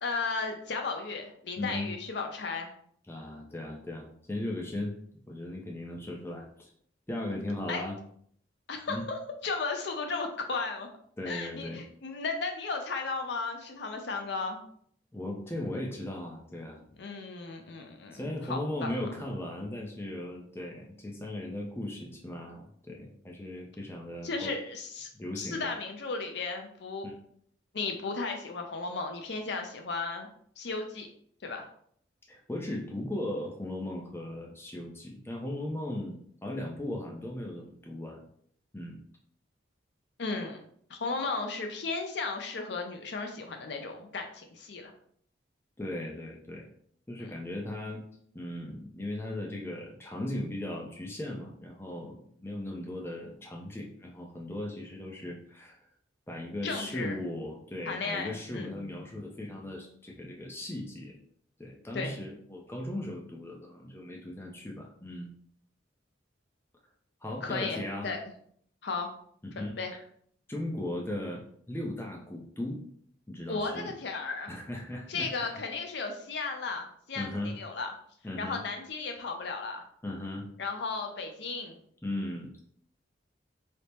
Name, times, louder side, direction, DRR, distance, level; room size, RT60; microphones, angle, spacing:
voice 1, 0.0-2.7 7.7-7.9 8.7-10.9 11.3-14.6 17.0-18.9 24.2-25.1 25.4-27.1 27.7-30.3 30.6-31.1 31.4-31.6 40.2-40.6 40.9-44.9 47.2-47.3 56.6-57.2 57.9-58.7 61.9-62.1 67.4-68.2 68.8-69.1 69.6-69.9 73.5-74.5 75.1-77.9 78.4-79.8 80.6-81.8, left 4 dB, 60° left, 4 dB, 0.5 m, -35 dB
voice 2, 1.6-1.9 3.1-4.9 5.3-6.7 7.1-8.0 8.9-9.0 11.2-11.8 15.1-16.8 18.1-24.5 25.1-25.7 27.0-27.1 32.3-38.2 38.7-39.0 45.8-46.7 47.1-48.0 48.3-55.8 56.3-61.2 61.6-65.3 67.2-68.1 69.4-69.8 70.5-72.8 73.3-73.9 74.5-75.6 77.2-77.5 78.2-78.6 80.0-80.5 82.0-82.5, left 1 dB, 10° left, -1 dB, 0.4 m, -37 dB
3.3 x 2.0 x 4.2 m, 0.63 s
head